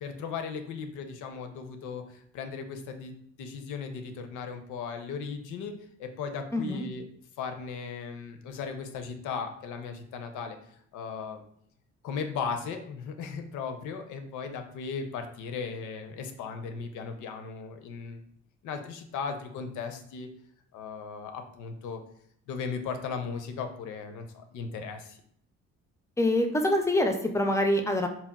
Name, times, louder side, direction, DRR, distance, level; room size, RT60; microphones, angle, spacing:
voice 1, 0.0-3.1 3.4-5.7 6.0-7.0 7.4-10.6 10.9-11.4 12.0-18.2 18.6-20.3 20.7-22.0 22.5-25.2, left 5 dB, 80° left, 6 dB, 0.5 m, -37 dB
voice 2, 6.5-6.9 26.2-28.1, left 1 dB, 10° left, 5 dB, 0.3 m, -25 dB
4.0 x 2.0 x 2.2 m, 0.67 s
cardioid pair, 90°, 30 cm